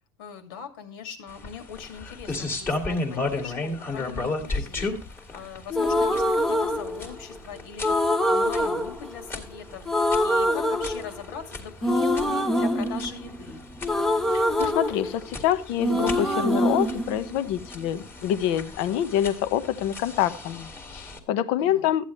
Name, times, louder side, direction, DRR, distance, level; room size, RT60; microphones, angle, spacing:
voice 1, 0.2-9.9 10.2-13.6 21.6-22.0, left 7 dB, 65° left, 7 dB, 2.4 m, -40 dB
sound 1, 1.3-21.2, left 2 dB, 20° left, 2.0 m, -35 dB
sound 2, 5.7-7.4 7.8-9.6 9.9-11.4 11.8-15.5 15.8-17.9, left 1 dB, 5° left, 0.8 m, -25 dB
voice 2, 14.3-22.1, left 11 dB, 50° left, 12 dB, 1.1 m, -26 dB
14.0 x 9.4 x 3.2 m, 0.34 s
supercardioid pair, 170°, 12 cm